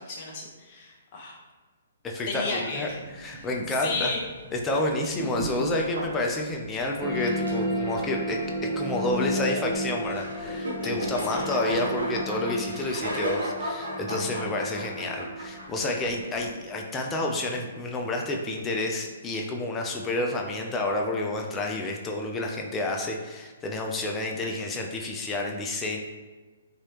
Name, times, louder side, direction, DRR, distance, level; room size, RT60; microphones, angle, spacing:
voice 1, 0.0-1.4 2.3-3.0 3.2-3.5 3.8-4.2 11.3-11.5 24.3-24.6, left 3 dB, 40° left, -2 dB, 0.9 m, -33 dB
voice 2, 2.0-2.9 3.2-4.1 4.5-8.4 8.7-26.0, left 2 dB, 15° left, 1 dB, 0.4 m, -29 dB
sound 1, 2.9-16.5, equal, 75° right, 0.9 m, -36 dB
sound 2, 7.0-18.0, equal, 15° right, 1.1 m, -34 dB
3.1 x 2.9 x 2.9 m, 1.3 s
hypercardioid pair, 135°, 0 cm